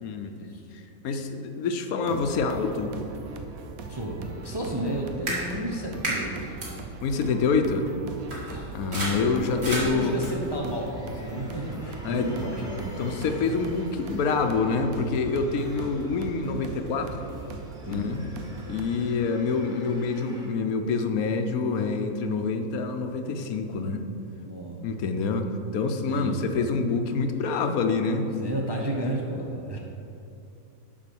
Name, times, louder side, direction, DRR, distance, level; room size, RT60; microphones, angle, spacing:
voice 1, 0.0-3.0 7.0-7.9 8.7-10.1 12.0-12.3 13.0-17.2 17.9-18.2 18.7-24.0 24.8-25.5 25.7-28.3, left 4 dB, 75° left, 6 dB, 1.1 m, -27 dB
sound 1, 2.0-18.9, right 3 dB, 75° right, 1.2 m, -40 dB
voice 2, 3.9-6.6 8.3-8.8 9.8-13.0 17.8-18.1 24.4-24.8 26.1-26.4 28.4-29.8, right 1 dB, 25° right, -2 dB, 0.5 m, -32 dB
sound 2, 5.3-5.4 6.0-6.2 6.6-6.7 7.8-7.9 8.3-10.6, right 1 dB, 45° right, 2.1 m, -32 dB
sound 3, 9.2-20.5, equal, 5° right, 1.1 m, -48 dB
7.5 x 5.4 x 6.9 m, 2.7 s
omnidirectional pair, 1.6 m